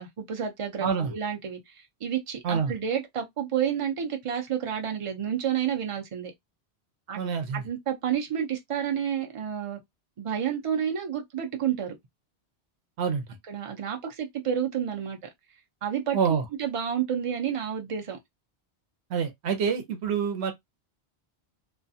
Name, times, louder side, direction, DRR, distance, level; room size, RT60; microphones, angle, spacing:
voice 1, 0.0-6.3 7.1-7.2 7.5-9.8 10.2-12.0 13.5-15.2 15.8-16.2 16.6-18.2, right 8 dB, 35° right, 0.6 m, -30 dB
voice 2, 0.8-1.1 2.4-2.7 7.2-7.6 13.0-13.2 16.1-16.5 19.1-20.5, right 6 dB, 75° right, 1.0 m, -27 dB
2.4 x 2.3 x 2.6 m
omnidirectional pair, 1.1 m